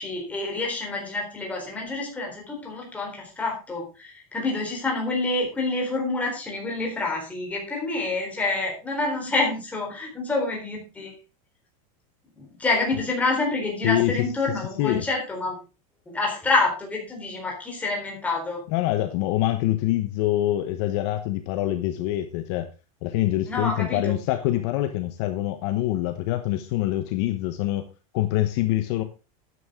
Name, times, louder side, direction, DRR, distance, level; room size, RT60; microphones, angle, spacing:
voice 1, 0.0-11.1 12.4-15.6 16.1-18.6 23.5-24.1, left 3 dB, 10° left, -1 dB, 4.0 m, -27 dB
voice 2, 13.8-14.2 14.8-15.1 18.7-22.7 23.0-27.9 28.1-29.0, left 14 dB, 50° left, 8 dB, 1.1 m, -25 dB
12.5 x 9.6 x 3.7 m, 0.30 s
supercardioid pair, 180°, 18 cm